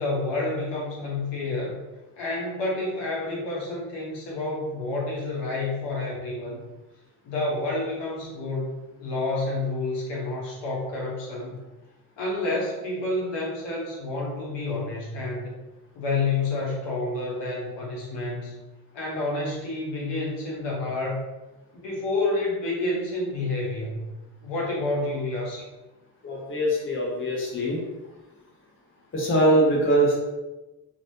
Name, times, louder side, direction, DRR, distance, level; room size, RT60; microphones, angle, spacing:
voice 1, 0.0-1.8 2.2-6.6 7.2-11.6 12.2-15.6 15.9-18.6 18.9-21.2 21.7-24.1 24.4-25.6, left 2 dB, 60° left, -4 dB, 1.1 m, -29 dB
voice 2, 26.2-27.8 29.1-30.2, right 1 dB, 25° left, -3 dB, 0.9 m, -22 dB
3.1 x 2.5 x 2.7 m, 1.1 s
hypercardioid pair, 40°, 49 cm